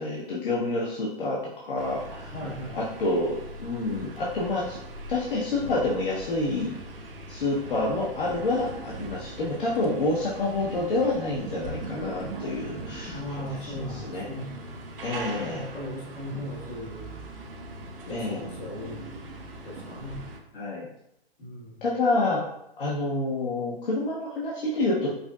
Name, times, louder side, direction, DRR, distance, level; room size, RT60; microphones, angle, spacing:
voice 1, 0.0-2.3 2.7-4.8 5.1-6.8 7.3-14.3 15.0-15.6 18.1-18.5 20.5-20.9 21.8-22.4 22.8-25.1, left 2 dB, 55° left, -5 dB, 0.9 m, -28 dB
sound 1, 1.8-20.4, right 2 dB, 60° right, 0.7 m, -40 dB
voice 2, 2.3-2.8 13.1-14.6 15.3-17.1 18.1-19.1 19.6-20.2 21.4-21.8, left 1 dB, 75° left, -4 dB, 1.5 m, -37 dB
5.1 x 2.6 x 2.3 m, 0.79 s
figure-of-eight pair, 125°, 32 cm